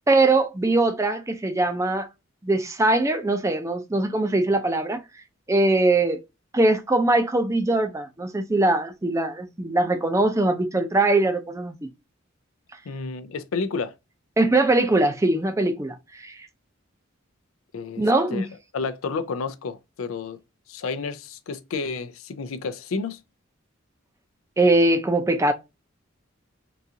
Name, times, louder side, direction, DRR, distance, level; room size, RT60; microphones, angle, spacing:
voice 1, 0.1-2.1 2.4-5.0 5.5-6.2 6.5-11.9 14.4-15.9 16.2-16.5 18.0-18.5 24.6-25.5, right 2 dB, 15° right, 0.4 m, -21 dB
voice 2, 12.9-13.9 17.7-18.5 18.7-20.4 20.7-23.2, left 4 dB, 90° left, 0.4 m, -31 dB
3.9 x 2.4 x 2.7 m
head